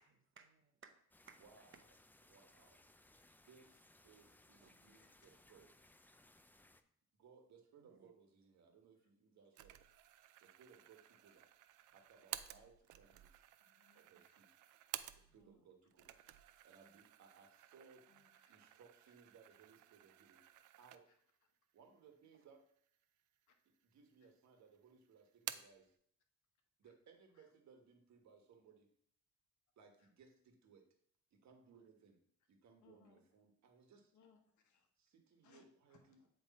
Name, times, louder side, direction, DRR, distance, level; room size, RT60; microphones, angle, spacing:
voice 1, 0.0-1.4 4.6-4.7 7.8-8.1 15.3-15.6, right 6 dB, 40° right, 8 dB, 0.8 m, -64 dB
sound 1, 1.1-6.8, left 1 dB, 5° left, 0.3 m, -67 dB
voice 2, 1.4-1.7 2.3-2.7 3.5-3.6 4.0-5.7 7.2-9.8 10.4-11.5 11.9-13.4 13.9-14.6 15.1-16.2 16.6-18.0 18.5-21.0 21.7-22.6 23.8-26.0 26.8-28.9 29.8-30.8 31.3-32.2 32.5-34.1 35.0-36.2, right 5 dB, 65° right, 3 dB, 1.3 m, -65 dB
sound 2, 9.6-15.6 15.9-21.4 21.8-21.9 22.7-23.4 23.7-24.5 24.7-25.9, right 13 dB, 85° right, 0.5 m, -53 dB
voice 3, 13.6-14.4 14.7-14.8 15.4-15.7 18.1-18.7 19.1-19.2 23.5-23.6 27.3-27.5 30.0-30.1 32.8-33.2 34.1-34.9 35.4-36.3, left 6 dB, 75° left, 5 dB, 1.1 m, -71 dB
8.3 x 3.3 x 4.1 m, 0.65 s
cardioid pair, 90°, 30 cm